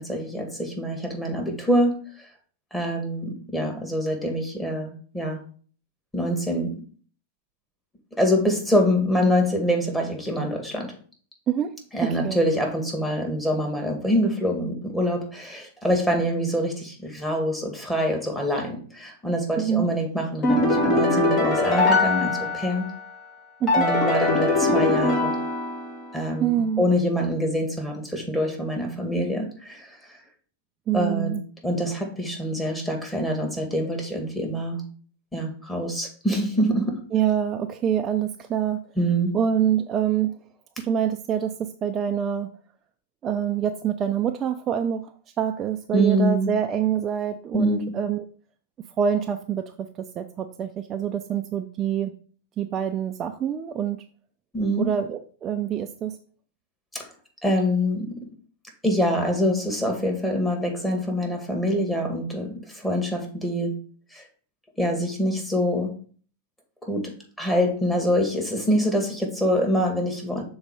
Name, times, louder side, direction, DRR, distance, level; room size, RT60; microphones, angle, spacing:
voice 1, 0.0-2.0 2.7-5.4 6.1-6.8 8.2-11.0 11.9-22.9 23.7-25.3 26.1-30.0 30.9-31.4 31.6-34.8 35.3-37.0 39.0-39.4 45.9-46.5 47.5-47.9 54.5-54.9 56.9-57.1 57.4-58.3 58.8-63.8 64.1-64.2 64.8-65.9 66.8-70.4, equal, 5° left, 2 dB, 2.1 m, -25 dB
voice 2, 12.0-12.4 19.6-19.9 23.6-23.9 26.4-26.9 30.9-31.4 37.1-38.8 39.3-40.3 40.8-42.5 43.2-45.1 45.4-48.2 49.0-49.7 50.2-52.1 52.6-54.0 54.8-56.2, right 9 dB, 30° right, 6 dB, 0.5 m, -25 dB
sound 1, 20.4-23.0 23.7-26.1, left 2 dB, 35° left, 2.3 m, -22 dB
6.6 x 4.0 x 4.8 m, 0.43 s
hypercardioid pair, 110°, 0 cm